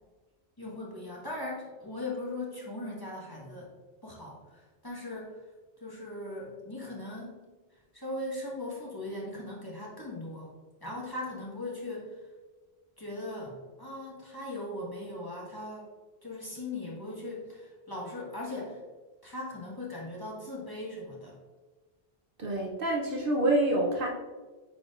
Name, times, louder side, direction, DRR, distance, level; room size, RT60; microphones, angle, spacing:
voice 1, 0.6-3.7 4.0-5.4 5.8-7.4 7.9-10.5 10.8-12.3 13.0-15.9 16.2-18.8 19.2-21.4, left 2 dB, 20° left, -4 dB, 1.5 m, -39 dB
voice 2, 22.4-24.1, right 1 dB, 60° right, 0 dB, 1.0 m, -27 dB
8.8 x 4.8 x 2.5 m, 1.3 s
omnidirectional pair, 1.0 m